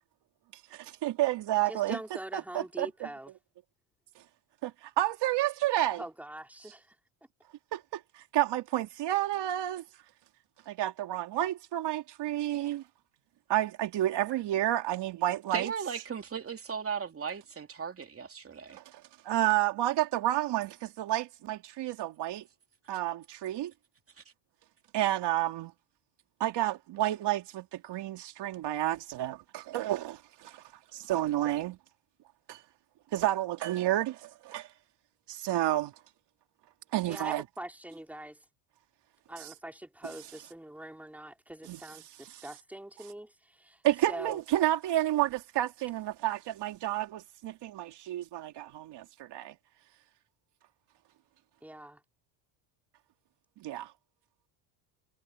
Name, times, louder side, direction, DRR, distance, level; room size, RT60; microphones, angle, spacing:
voice 1, 1.0-2.0 2.3-3.1 4.6-6.0 7.7-9.8 10.7-12.8 13.5-15.7 18.7-22.5 22.9-23.7 24.9-25.7 26.4-30.6 30.9-31.8 32.5-32.6 33.1-34.7 35.3-35.9 36.9-37.4 41.7-41.8 42.3-42.4 43.8-49.5 53.6-53.9, right 14 dB, 60° right, 3.0 m, -30 dB
voice 2, 1.7-3.3 5.9-7.0 37.1-38.4 39.3-43.8 44.1-44.4 51.6-52.0, right 1 dB, 5° right, 3.9 m, -43 dB
voice 3, 15.5-18.8, right 6 dB, 30° right, 3.1 m, -36 dB
cardioid pair, 115°, 48 cm